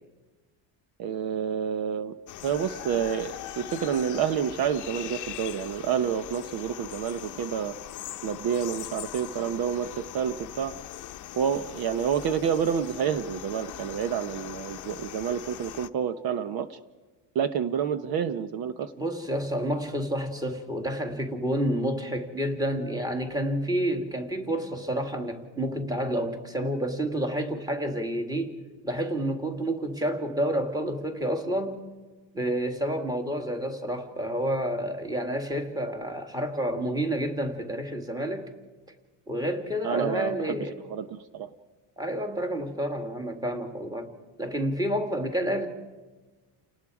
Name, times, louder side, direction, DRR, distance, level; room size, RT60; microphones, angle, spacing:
voice 1, 1.0-2.1 2.4-7.7 8.2-10.7 11.4-16.8 17.3-18.9 39.8-40.6 40.9-41.5, right 8 dB, 60° right, 11 dB, 1.0 m, -29 dB
sound 1, 2.3-15.9, left 13 dB, 45° left, 0.8 m, -41 dB
voice 2, 19.0-28.6 28.8-31.8 32.3-38.5 39.3-40.8 42.0-44.1 44.4-45.7, equal, 10° right, 5 dB, 2.0 m, -29 dB
30.0 x 19.0 x 4.9 m, 1.3 s
cardioid pair, 155°, 42 cm